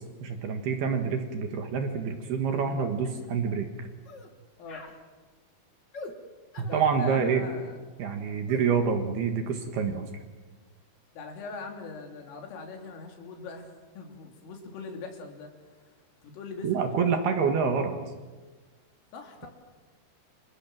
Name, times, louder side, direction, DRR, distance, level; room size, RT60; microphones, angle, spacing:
voice 1, 0.2-3.9 6.6-7.4 8.0-10.1 16.6-18.0, right 6 dB, 60° right, 6 dB, 3.3 m, -27 dB
sound 1, 2.5-2.7 3.0-3.3 4.0-4.3 4.7-5.0 5.9-6.2 6.5-6.8 8.5-8.7, left 3 dB, 40° left, 1.5 m, -43 dB
voice 2, 6.7-7.8 11.1-13.7 14.0-15.5 15.9-16.0 16.2-17.3 19.1-19.5, left 4 dB, 80° left, 3 dB, 6.0 m, -41 dB
28.5 x 27.0 x 7.6 m, 1.3 s
omnidirectional pair, 5.8 m